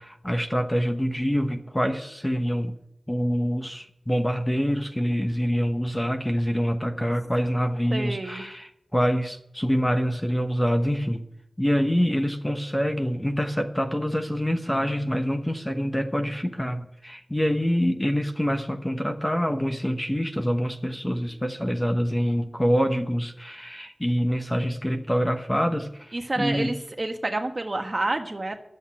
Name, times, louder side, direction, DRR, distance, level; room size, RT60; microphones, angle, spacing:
voice 1, 0.0-2.7 3.1-11.2 11.6-26.7, equal, 10° left, 5 dB, 1.0 m, -26 dB
voice 2, 7.9-8.5 26.1-28.6, right 2 dB, 40° right, 5 dB, 1.4 m, -29 dB
11.5 x 7.8 x 8.6 m, 0.78 s
wide cardioid pair, 85°, 0 cm